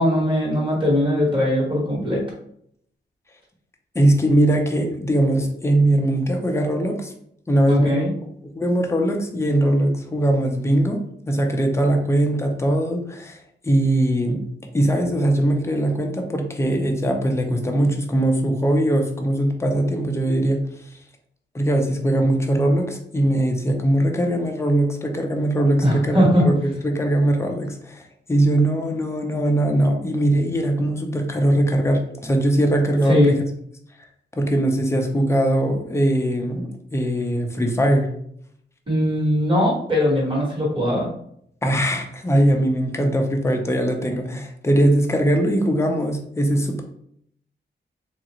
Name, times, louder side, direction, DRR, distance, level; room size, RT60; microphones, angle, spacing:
voice 1, 0.0-2.2 7.7-8.1 25.8-26.5 33.1-33.3 38.9-41.1, equal, 25° right, -4 dB, 1.3 m, -20 dB
voice 2, 3.9-7.1 7.5-8.1 8.6-14.4 14.7-20.6 21.5-28.0 28.3-33.4 34.4-38.1 41.6-46.8, right 1 dB, 15° left, 3 dB, 0.5 m, -21 dB
3.7 x 2.4 x 2.9 m, 0.69 s
wide cardioid pair, 150°, 19 cm